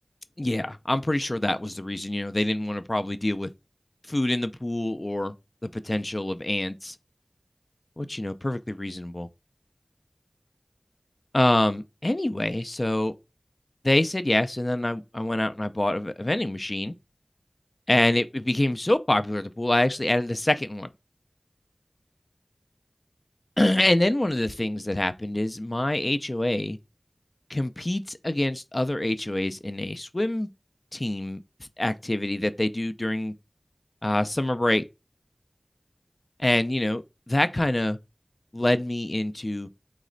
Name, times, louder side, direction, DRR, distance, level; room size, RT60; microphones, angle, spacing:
voice 1, 0.4-3.5 4.1-5.3 5.6-7.0 8.0-9.3 11.3-13.1 13.8-16.9 17.9-20.9 23.6-26.8 27.5-30.5 30.9-31.4 31.8-33.3 34.0-34.8 36.4-38.0 38.5-39.7, left 1 dB, 40° left, 0.4 m, -26 dB
4.0 x 3.2 x 3.8 m
wide cardioid pair, 45°, 0 cm